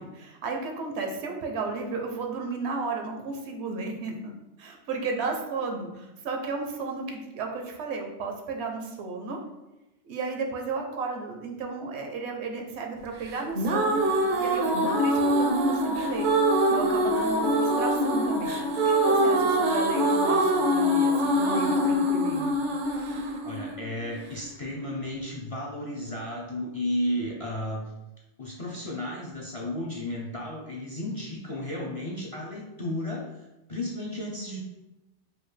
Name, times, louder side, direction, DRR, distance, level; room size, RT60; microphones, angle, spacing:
voice 1, 0.0-4.3 4.6-9.4 10.0-16.3 16.7-22.5, right 3 dB, 75° right, 2 dB, 0.9 m, -34 dB
sound 1, 13.3-24.3, equal, 55° right, 0.6 m, -24 dB
voice 2, 23.4-27.8 28.4-34.6, left 1 dB, 45° left, -3 dB, 0.4 m, -33 dB
4.8 x 2.3 x 3.2 m, 0.98 s
omnidirectional pair, 1.1 m